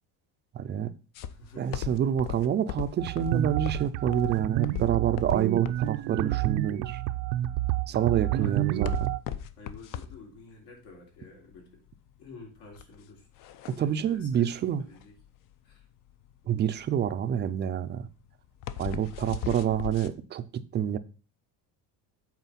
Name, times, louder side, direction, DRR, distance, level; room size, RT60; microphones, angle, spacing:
voice 1, 0.5-0.9 1.6-7.0 7.9-9.1 13.7-14.9 16.5-18.1 18.8-20.4 20.7-21.0, right 9 dB, 30° right, 0.4 m, -27 dB
sound 1, 1.1-20.1, left 10 dB, 50° left, 0.7 m, -39 dB
voice 2, 1.3-2.0 8.4-9.1 9.6-11.8 12.2-13.3 13.6-15.2 15.6-15.8 17.3-17.4, left 3 dB, 80° left, 3.7 m, -50 dB
sound 2, 3.0-9.2, right 15 dB, 90° right, 0.7 m, -29 dB
8.2 x 4.5 x 5.6 m
cardioid pair, 150°, 41 cm